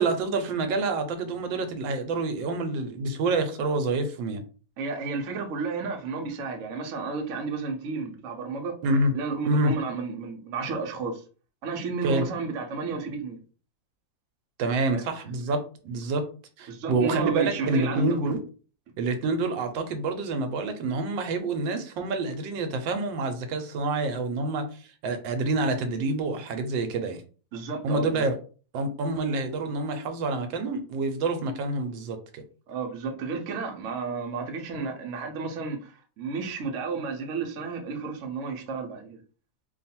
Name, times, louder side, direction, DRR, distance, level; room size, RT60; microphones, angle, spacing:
voice 1, 0.0-4.4 8.8-9.1 9.4-9.7 12.0-12.2 14.6-16.2 16.6-18.4 19.0-27.2 27.8-28.4 28.7-32.4, right 3 dB, 85° right, 1.4 m, -27 dB
voice 2, 4.8-8.7 9.1-11.1 11.6-13.4 14.9-15.0 16.7-18.3 27.5-28.3 32.7-39.2, right 4 dB, 60° right, 0.9 m, -32 dB
3.1 x 2.3 x 4.2 m
omnidirectional pair, 2.0 m